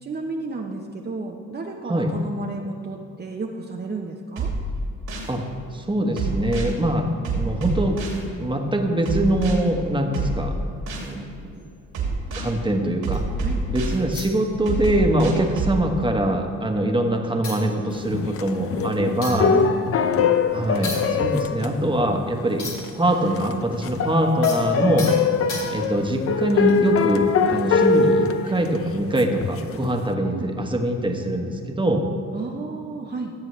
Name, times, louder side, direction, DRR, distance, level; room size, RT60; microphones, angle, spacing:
voice 1, 0.0-4.5 12.8-12.9 13.4-13.6 19.0-19.1 19.5-19.7 24.8-25.0 30.3-30.5 32.3-33.3, right 3 dB, 35° right, 0 dB, 0.9 m, -32 dB
sound 1, 4.4-5.3 6.2-6.7 7.2-8.2 9.1-9.5 10.1-11.1 11.9-12.5 13.0-14.0 14.7-15.8, right 3 dB, 75° right, 2.7 m, -27 dB
voice 2, 5.7-7.1 7.3-8.0 8.4-10.6 11.0-11.5 12.3-13.2 13.7-19.6 20.5-22.6 22.9-25.1 25.7-32.0, right 1 dB, 15° right, 3 dB, 1.3 m, -23 dB
sound 2, 11.5-13.4 14.1-15.0 15.3-15.5 15.8-16.7 17.1-17.2 17.4-23.1 23.3-26.1 26.6-26.9, left 3 dB, 80° left, 2.7 m, -38 dB
sound 3, 18.0-22.4 22.8-22.9 23.3-29.9, left 5 dB, 50° left, 0.7 m, -23 dB
16.5 x 7.4 x 3.2 m, 2.6 s
cardioid pair, 90°, 30 cm